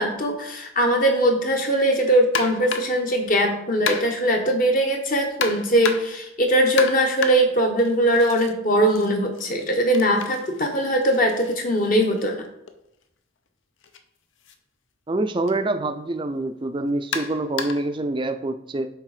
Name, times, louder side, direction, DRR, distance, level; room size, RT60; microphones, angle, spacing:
voice 1, 0.0-12.5, right 1 dB, 40° left, 2 dB, 1.0 m, -21 dB
sound 1, 2.3-3.0 3.9-4.3 5.4-6.2 6.8-8.5 8.9-12.7 13.8-14.0 14.4-14.5 15.5-15.6 17.1-17.9, left 5 dB, 65° left, 0.6 m, -32 dB
voice 2, 15.1-18.9, right 2 dB, 25° right, 8 dB, 0.4 m, -26 dB
8.2 x 3.5 x 4.9 m, 0.82 s
head